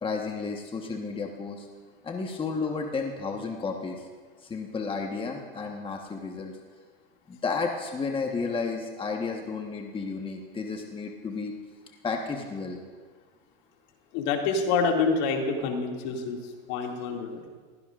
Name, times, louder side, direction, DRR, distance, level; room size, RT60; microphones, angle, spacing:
voice 1, 0.0-1.7 2.0-4.1 4.4-6.6 7.3-11.5 12.0-12.8, left 4 dB, 20° left, 2 dB, 1.2 m, -32 dB
voice 2, 14.1-17.5, left 4 dB, 60° left, 1 dB, 2.4 m, -27 dB
21.0 x 16.0 x 2.5 m, 1.5 s
hypercardioid pair, 110°, 29 cm